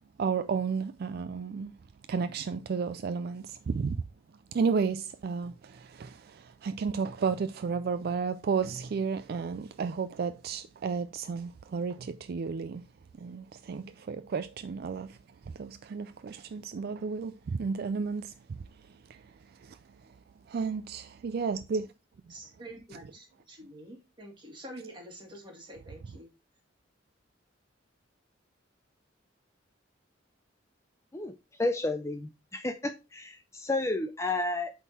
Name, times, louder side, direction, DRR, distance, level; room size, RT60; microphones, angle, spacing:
voice 1, 0.2-1.7 2.1-4.0 4.5-12.9 13.2-15.2 15.6-18.6 19.1-19.2 19.6-19.8 20.5-21.9, right 5 dB, 50° right, 0.3 m, -32 dB
voice 2, 22.3-26.3, right 1 dB, 25° right, 2.2 m, -47 dB
voice 3, 31.1-34.7, left 2 dB, 15° left, 0.4 m, -32 dB
8.2 x 3.7 x 4.2 m
head